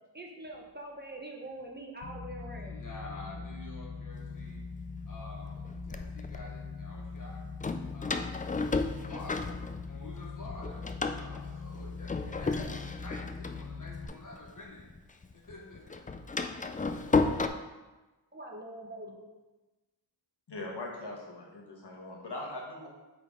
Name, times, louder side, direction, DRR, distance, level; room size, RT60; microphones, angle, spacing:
voice 1, 0.1-2.8 18.3-19.3, right 1 dB, 25° right, 0 dB, 0.9 m, -44 dB
sound 1, 2.0-14.1, left 4 dB, 85° left, 0.8 m, -42 dB
voice 2, 2.4-4.6 5.0-7.5 7.9-8.6 9.0-9.6 9.9-14.9 15.3-16.1 16.8-17.3, left 2 dB, 45° left, 0 dB, 1.3 m, -49 dB
Door, 4.4-4.5 5.3-6.4 7.6-10.2 10.5-15.0 15.2-17.5, left 3 dB, 20° left, 0.3 m, -33 dB
voice 3, 20.5-22.9, left 2 dB, 65° left, -2 dB, 1.5 m, -41 dB
8.0 x 3.8 x 3.7 m, 1.1 s
wide cardioid pair, 85°, 43 cm